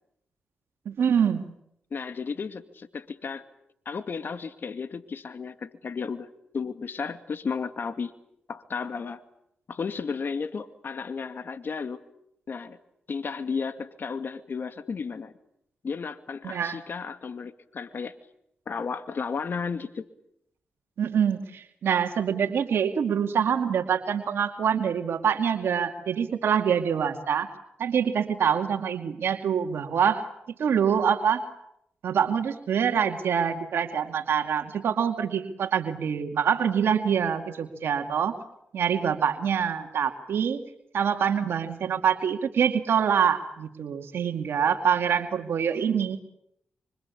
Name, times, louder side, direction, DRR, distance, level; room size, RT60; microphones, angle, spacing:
voice 1, 0.9-1.5 16.4-16.8 21.0-27.5 27.8-30.2 30.6-31.4 32.0-38.3 38.7-40.6 40.9-46.2, right 7 dB, 75° right, 6 dB, 2.5 m, -25 dB
voice 2, 1.9-3.4 3.9-6.3 6.5-8.1 8.5-9.2 9.7-12.0 12.5-12.8 13.1-15.3 15.8-18.2 18.7-20.1, left 5 dB, 60° left, 10 dB, 2.4 m, -33 dB
27.0 x 26.0 x 8.6 m, 0.77 s
supercardioid pair, 50°, 4 cm